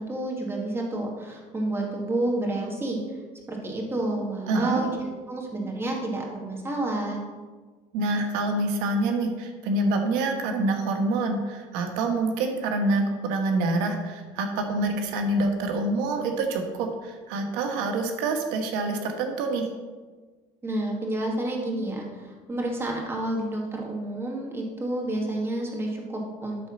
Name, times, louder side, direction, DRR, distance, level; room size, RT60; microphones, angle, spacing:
voice 1, 0.0-3.2 3.5-7.2 20.6-26.6, right 1 dB, 15° right, -1 dB, 2.2 m, -30 dB
voice 2, 4.5-4.8 7.9-19.7, right 2 dB, 90° right, 4 dB, 1.3 m, -26 dB
12.5 x 4.3 x 6.3 m, 1.4 s
cardioid pair, 135°, 14 cm